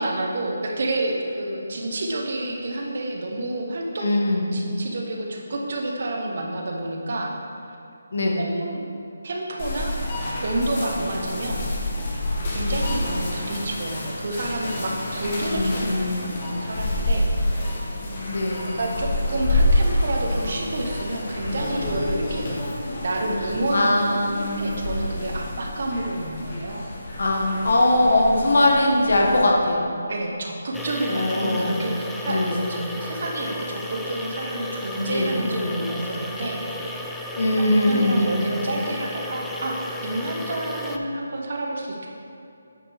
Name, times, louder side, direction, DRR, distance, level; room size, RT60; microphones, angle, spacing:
voice 1, 0.0-4.1 4.5-7.3 8.4-8.8 9.2-10.0 10.4-11.7 12.5-17.7 18.6-22.5 23.0-24.0 24.3-26.9 30.1-37.0 37.6-39.8 40.0-42.1, right 1 dB, 55° right, 0 dB, 1.1 m, -29 dB
voice 2, 4.0-4.5 8.1-8.5 15.5-16.3 18.3-18.8 23.7-24.8 27.2-29.9 31.1-31.7 32.3-32.6 35.1-35.8 37.3-38.4, left 1 dB, 70° left, -1 dB, 1.4 m, -21 dB
sound 1, 9.6-29.5, left 1 dB, 40° left, 1.4 m, -28 dB
sound 2, 30.7-41.0, left 1 dB, 5° left, 0.3 m, -34 dB
9.1 x 5.0 x 3.5 m, 2.7 s
figure-of-eight pair, 160°, 0 cm